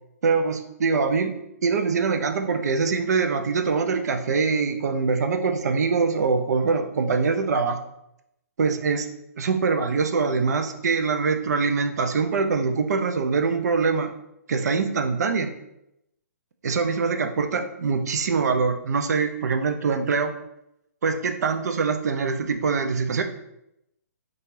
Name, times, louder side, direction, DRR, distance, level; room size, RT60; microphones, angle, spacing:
voice 1, 0.2-1.4 1.6-7.8 8.6-9.1 9.4-14.1 14.5-15.5 16.6-20.3 21.0-23.2, right 4 dB, 75° right, 7 dB, 0.4 m, -23 dB
2.6 x 2.3 x 3.1 m, 0.83 s
hypercardioid pair, 155°, 9 cm